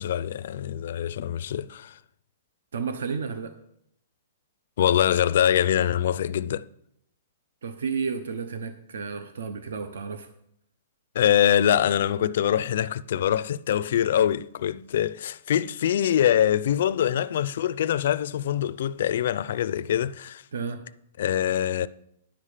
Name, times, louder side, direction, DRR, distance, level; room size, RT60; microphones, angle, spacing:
voice 1, 0.0-2.0 4.8-6.6 11.1-20.4 21.2-21.9, left 10 dB, 50° left, 0.4 m, -24 dB
voice 2, 2.7-3.5 7.6-10.3 20.5-20.8, right 5 dB, 80° right, 0.8 m, -32 dB
10.5 x 7.3 x 4.9 m
hypercardioid pair, 175°, 0 cm